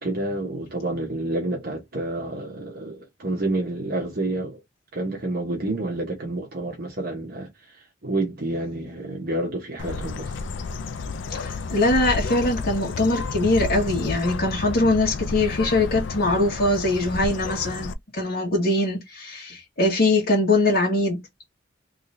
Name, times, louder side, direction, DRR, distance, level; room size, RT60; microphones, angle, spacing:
voice 1, 0.0-4.6 4.9-10.4, right 2 dB, 55° right, 1.1 m, -29 dB
Bird, 9.8-17.9, left 4 dB, 70° left, 0.4 m, -31 dB
voice 2, 11.3-21.2, left 2 dB, 55° left, 1.7 m, -22 dB
3.6 x 3.2 x 2.7 m
head